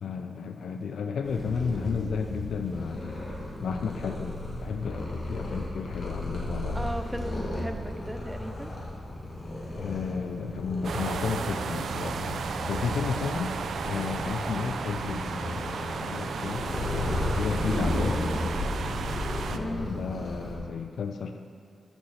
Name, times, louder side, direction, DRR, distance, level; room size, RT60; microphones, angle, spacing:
voice 1, 0.0-3.2 3.6-6.8 9.7-13.6 13.8-16.7 16.9-18.3 19.5-21.4, left 6 dB, 80° left, 6 dB, 0.4 m, -33 dB
Purr, 1.2-20.5, left 1 dB, 50° left, 1.7 m, -34 dB
voice 2, 6.7-8.7 19.5-19.9, equal, 5° right, 7 dB, 0.5 m, -36 dB
sound 1, 10.8-19.6, right 6 dB, 70° right, 0.4 m, -34 dB
8.1 x 7.2 x 5.6 m, 2.4 s
wide cardioid pair, 150°, 0 cm